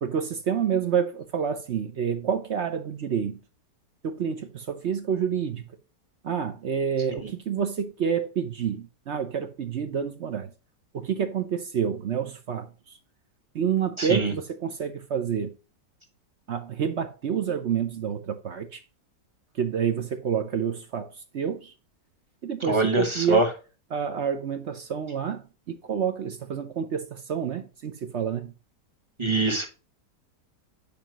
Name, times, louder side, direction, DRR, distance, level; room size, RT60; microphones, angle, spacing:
voice 1, 0.0-3.4 4.0-5.6 6.2-10.5 10.9-12.7 13.5-15.5 16.5-18.8 19.6-21.1 21.3-21.7 22.4-23.4 23.9-25.4 25.7-28.5, right 7 dB, 55° right, 0.8 m, -28 dB
voice 2, 14.0-14.3 22.6-23.5 29.2-29.7, right 2 dB, 20° right, 1.4 m, -24 dB
8.8 x 5.1 x 2.9 m
omnidirectional pair, 1.9 m